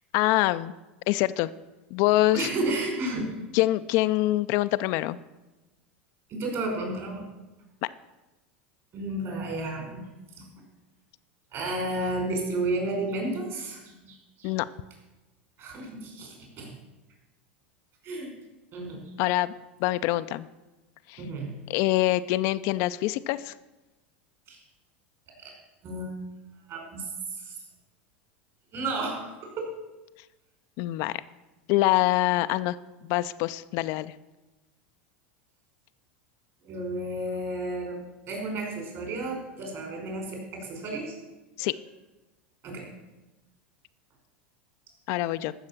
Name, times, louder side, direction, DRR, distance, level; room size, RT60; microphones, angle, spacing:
voice 1, 0.1-0.7 1.1-1.5 1.9-2.5 3.5-5.2 7.8-7.9 14.4-14.7 19.2-19.5 19.8-20.5 21.1-21.2 21.7-23.5 30.8-31.2 31.7-32.8 33.0-34.1 41.6-41.8 45.1-45.5, left 17 dB, 55° left, 12 dB, 0.5 m, -25 dB
voice 2, 2.3-3.3 6.3-7.3 8.9-10.5 11.5-14.5 15.6-16.8 18.0-18.3 18.7-19.0 21.2-21.5 24.5-24.6 25.4-25.5 25.8-26.1 26.7-27.5 28.7-29.7 36.6-41.1 41.6-41.7 42.6-42.9, right 2 dB, 50° right, 1 dB, 5.4 m, -32 dB
14.0 x 6.5 x 7.4 m, 1.1 s
hypercardioid pair, 90°, 6 cm